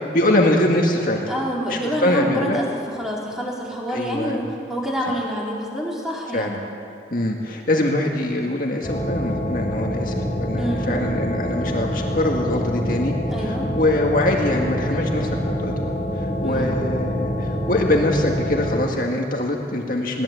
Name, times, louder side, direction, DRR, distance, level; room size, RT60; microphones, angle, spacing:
voice 1, 0.1-1.3 1.7-2.6 3.9-4.5 6.3-6.6 7.1-15.7 16.1-20.2, left 1 dB, 50° left, 0 dB, 1.9 m, -23 dB
voice 2, 1.3-2.6 3.0-6.6 10.6-10.9 13.3-13.7 16.4-16.7, equal, 5° right, -4 dB, 4.4 m, -27 dB
sound 1, 8.8-18.9, equal, 30° left, 4.3 m, -26 dB
22.5 x 17.5 x 8.4 m, 2.4 s
head